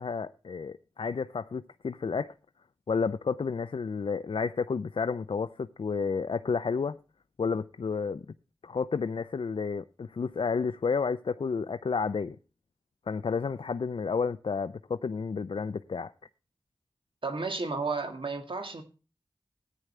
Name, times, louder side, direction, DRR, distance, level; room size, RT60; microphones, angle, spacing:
voice 1, 0.0-2.3 2.9-7.0 7.4-8.2 8.6-12.4 13.1-16.1, left 5 dB, 90° left, 0.5 m, -31 dB
voice 2, 17.2-18.8, right 4 dB, 75° right, 1.9 m, -32 dB
14.5 x 9.4 x 3.2 m
wide cardioid pair, 45°, 9 cm